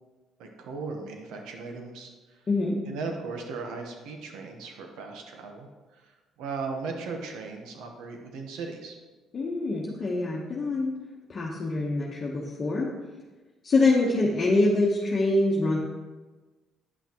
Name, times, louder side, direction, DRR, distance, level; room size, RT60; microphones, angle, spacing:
voice 1, 0.4-2.4 2.9-5.7 6.0-6.1 6.4-8.9, right 4 dB, 85° right, 3 dB, 1.0 m, -37 dB
voice 2, 2.5-2.8 9.3-10.9 11.3-12.9 13.6-15.8, left 2 dB, 35° left, -3 dB, 1.0 m, -25 dB
9.4 x 5.8 x 3.0 m, 1.2 s
cardioid pair, 105°, 0 cm